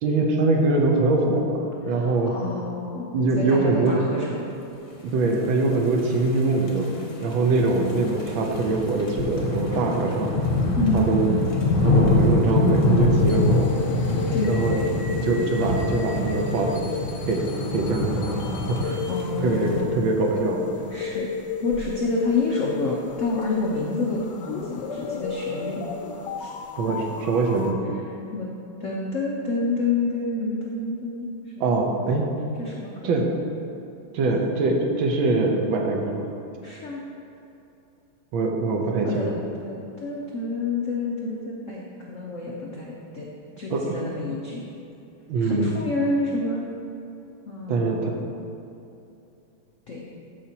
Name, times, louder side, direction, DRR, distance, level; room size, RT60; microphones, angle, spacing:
voice 1, 0.0-2.3 3.1-4.0 5.0-10.3 10.9-11.3 11.8-13.7 14.4-14.8 15.2-16.9 17.3-17.5 17.7-19.0 19.4-20.7 26.8-27.8 31.6-32.3 33.0-33.3 34.1-36.3 38.3-39.3 43.7-43.9 45.3-45.7 47.7-48.1, right 3 dB, 70° right, 1 dB, 1.5 m, -23 dB
voice 2, 1.9-4.4 10.8-11.6 14.3-15.0 19.1-20.0 20.9-21.3 21.6-25.8 26.4-26.5 27.9-28.0 28.3-28.5 28.8-31.3 31.6-31.7 32.6-32.9 36.6-37.0 39.0-39.3 39.6-43.3 43.6-44.6 45.4-46.7 47.5-48.3 49.9-50.0, left 3 dB, 85° left, -3 dB, 0.6 m, -28 dB
sound 1, 5.5-19.8, left 2 dB, 45° left, 0.9 m, -25 dB
sound 2, 13.1-27.7, left 5 dB, 70° left, 1.1 m, -33 dB
13.0 x 5.1 x 2.8 m, 2.8 s
omnidirectional pair, 2.4 m